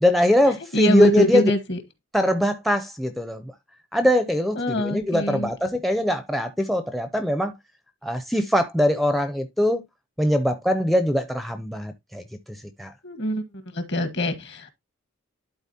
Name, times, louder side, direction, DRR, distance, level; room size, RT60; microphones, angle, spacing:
voice 1, 0.0-1.5 2.1-3.4 3.9-7.5 8.0-9.8 10.2-12.2 12.8-12.9, left 1 dB, ahead, 0.4 m, -22 dB
voice 2, 0.7-1.8 4.5-5.5 13.0-13.4 13.7-14.7, equal, 55° left, 1.3 m, -23 dB
12.0 x 4.0 x 2.7 m
head